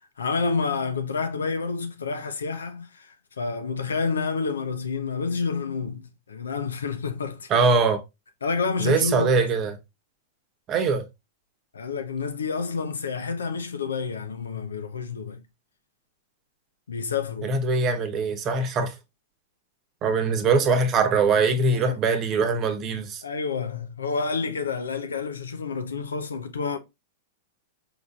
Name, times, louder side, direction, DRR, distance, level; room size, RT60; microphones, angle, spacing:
voice 1, 0.2-7.6 8.4-9.5 11.7-15.4 16.9-17.6 21.7-22.0 23.2-26.8, left 5 dB, 80° left, 0.7 m, -29 dB
voice 2, 7.5-8.0 8.8-9.8 10.7-11.1 17.4-18.9 20.0-23.2, right 4 dB, 35° right, 0.9 m, -22 dB
4.9 x 3.9 x 2.4 m
hypercardioid pair, 105°, 0 cm